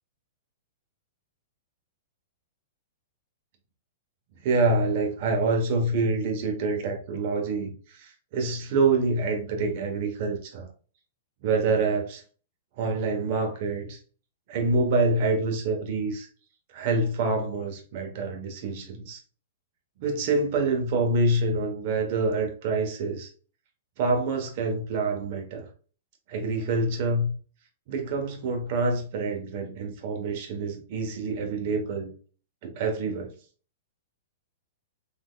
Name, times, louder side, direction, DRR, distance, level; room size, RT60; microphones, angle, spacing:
voice 1, 4.4-10.7 11.4-12.2 12.8-14.0 14.5-16.3 16.7-19.2 20.0-23.3 24.0-25.7 26.3-27.3 27.9-32.1 32.6-33.3, right 3 dB, 50° right, 1.0 m, -26 dB
3.7 x 2.8 x 2.3 m
hypercardioid pair, 140°, 0 cm